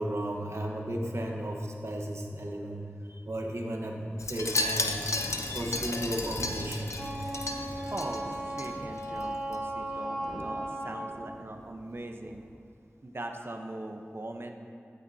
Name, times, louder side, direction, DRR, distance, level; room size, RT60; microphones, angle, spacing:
voice 1, 0.0-2.8 3.1-5.1 5.5-7.0, right 1 dB, 75° right, 1 dB, 1.2 m, -34 dB
Wind chime, 4.2-8.7 9.0-9.3 9.5-9.6, left 2 dB, 85° left, 0.7 m, -33 dB
sound 1, 4.4-12.5, equal, 15° left, 1.7 m, -46 dB
Wind instrument woodwind instrument, 6.9-11.2, right 1 dB, 20° right, 1.6 m, -36 dB
voice 2, 7.9-12.4 13.0-14.5, right 1 dB, 55° right, 3 dB, 0.9 m, -41 dB
15.0 x 9.0 x 2.8 m, 2.3 s
wide cardioid pair, 45°, 5 cm